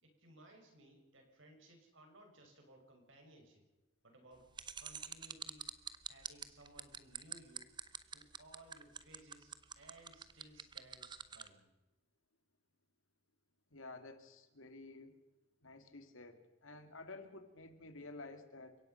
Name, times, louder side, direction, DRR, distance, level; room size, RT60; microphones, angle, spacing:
voice 1, 0.0-3.6 4.0-4.5 4.8-5.7 6.1-7.7 8.1-11.7, right 1 dB, 70° right, 3 dB, 6.5 m, -61 dB
sound 1, 4.6-11.5, right 7 dB, 20° right, 0.8 m, -45 dB
voice 2, 13.7-15.2 15.6-18.8, left 3 dB, 75° left, 8 dB, 2.5 m, -52 dB
30.0 x 17.0 x 5.8 m, 1.0 s
head